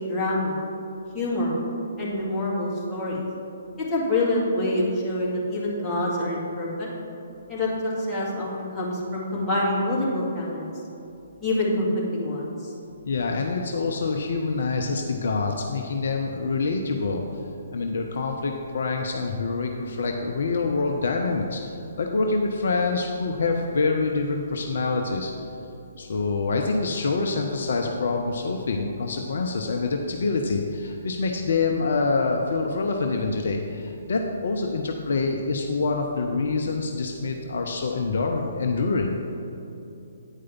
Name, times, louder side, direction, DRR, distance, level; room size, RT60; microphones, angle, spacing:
voice 1, 0.1-0.6 1.1-1.6 2.0-3.2 3.9-6.9 7.5-10.7 11.4-12.5, left 1 dB, 10° left, -7 dB, 2.0 m, -26 dB
voice 2, 13.0-17.2 17.7-25.3 26.0-39.2, left 3 dB, 60° left, 2 dB, 0.6 m, -26 dB
8.9 x 4.9 x 5.8 m, 2.8 s
figure-of-eight pair, 130°, 0 cm